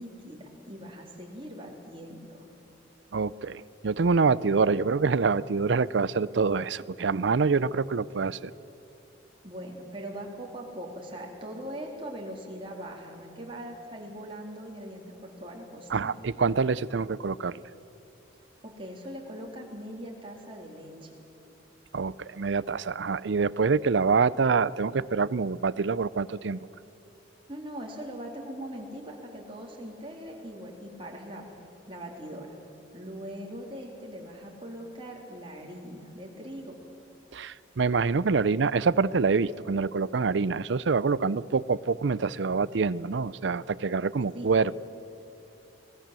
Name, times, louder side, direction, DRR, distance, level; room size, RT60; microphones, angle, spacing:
voice 1, 0.0-2.5 9.4-16.1 18.6-21.1 27.5-31.5 31.9-32.6 32.9-36.8 44.3-44.5, equal, 30° right, -1 dB, 3.7 m, -41 dB
voice 2, 3.1-8.5 15.9-17.6 21.9-26.6 37.3-44.7, right 4 dB, 70° right, 19 dB, 0.5 m, -26 dB
25.0 x 19.5 x 7.6 m, 2.8 s
head